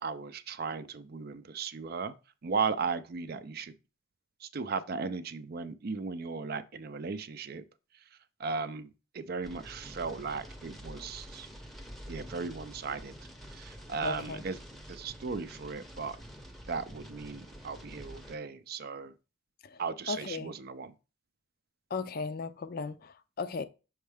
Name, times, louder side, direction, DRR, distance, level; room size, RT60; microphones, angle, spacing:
voice 1, 0.0-2.1 2.4-3.7 4.4-7.6 8.4-8.9 9.1-11.5 12.1-13.1 13.5-14.6 14.9-16.2 16.7-19.1 19.8-20.9, right 5 dB, 45° right, 0.4 m, -36 dB
sound 1, 9.4-18.4, equal, ahead, 0.7 m, -48 dB
voice 2, 14.0-14.4 19.6-19.8 20.1-20.6 21.9-23.6, left 4 dB, 45° left, 0.4 m, -36 dB
6.3 x 4.4 x 3.4 m
head